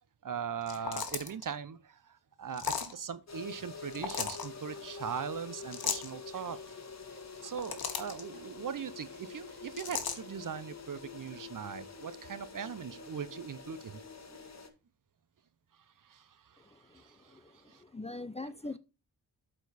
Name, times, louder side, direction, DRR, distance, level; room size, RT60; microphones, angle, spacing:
voice 1, 0.2-6.7 7.1-14.0 16.0-17.8, right 7 dB, 50° right, 0.8 m, -40 dB
sound 1, 0.6-1.4 2.5-2.9 3.9-4.5 5.7-6.1 7.4-8.2 9.8-10.2, left 6 dB, 60° left, 1.3 m, -35 dB
sound 2, 3.3-14.7, left 4 dB, 40° left, 1.5 m, -47 dB
voice 2, 16.6-18.8, left 2 dB, 15° left, 0.5 m, -43 dB
8.0 x 4.5 x 4.2 m
cardioid pair, 50°, 42 cm